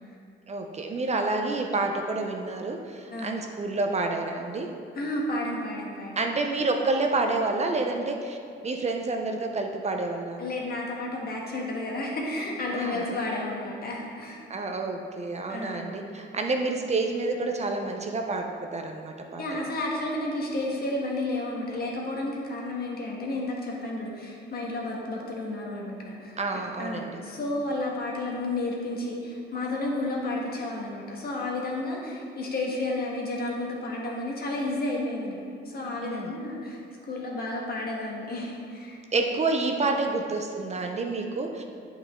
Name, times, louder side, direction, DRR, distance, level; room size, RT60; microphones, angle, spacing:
voice 1, 0.5-4.7 6.2-8.4 8.6-10.4 12.7-13.0 14.5-18.4 18.7-19.4 26.4-27.2 36.0-36.3 39.1-41.6, right 3 dB, 35° right, 3 dB, 0.6 m, -28 dB
voice 2, 4.9-6.3 10.4-14.4 15.5-15.9 16.5-16.8 19.4-26.4 26.8-39.0, left 2 dB, 50° left, -2 dB, 1.5 m, -32 dB
8.4 x 5.2 x 3.6 m, 2.3 s
cardioid pair, 90°, 20 cm